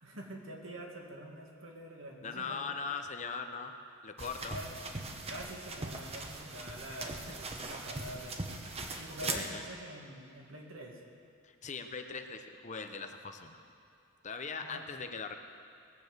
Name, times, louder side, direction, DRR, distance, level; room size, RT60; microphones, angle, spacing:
voice 1, 0.0-2.6 4.5-4.7 5.3-8.4 9.0-11.0 14.6-14.8, right 1 dB, 65° right, 0 dB, 2.1 m, -46 dB
voice 2, 2.2-3.7 4.0-4.6 6.9-7.0 8.9-9.6 11.4-13.6 14.2-15.3, left 5 dB, 35° left, 6 dB, 0.7 m, -40 dB
sound 1, 4.2-9.5, right 3 dB, 30° right, 1.0 m, -40 dB
20.0 x 7.0 x 7.9 m, 2.4 s
head